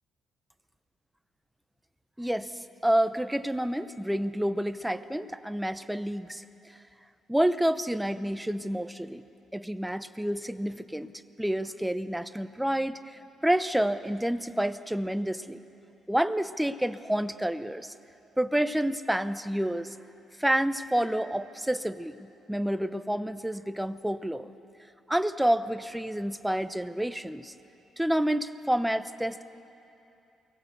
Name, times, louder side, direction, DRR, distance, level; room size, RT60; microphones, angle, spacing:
voice 1, 2.2-6.8 7.3-9.2 9.5-11.1 11.4-15.6 16.1-17.9 18.4-20.0 20.4-24.5 25.1-27.5 28.0-29.5, right 1 dB, 5° right, 12 dB, 0.8 m, -29 dB
23.5 x 17.5 x 8.1 m, 2.8 s
cardioid pair, 90°, 0 cm